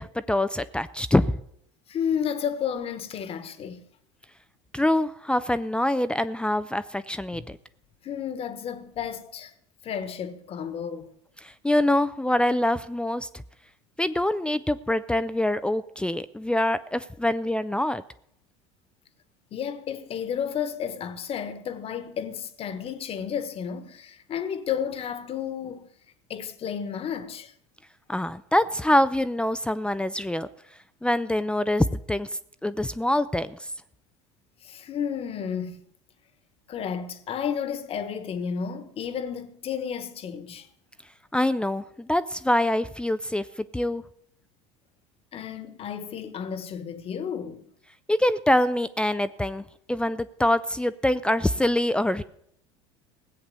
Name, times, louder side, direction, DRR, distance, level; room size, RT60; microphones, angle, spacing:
voice 1, 0.0-1.4 4.7-7.6 11.4-13.3 14.0-18.0 28.1-30.5 31.0-32.3 32.6-33.6 41.3-43.4 43.7-44.0 48.1-52.2, left 1 dB, 5° left, 0.5 m, -25 dB
voice 2, 1.9-3.8 7.3-7.5 8.0-9.5 9.8-11.1 19.5-25.9 26.3-27.5 34.6-35.8 36.7-40.7 45.3-47.7, left 8 dB, 40° left, 1.4 m, -32 dB
17.5 x 8.0 x 6.9 m
hypercardioid pair, 75°, 15 cm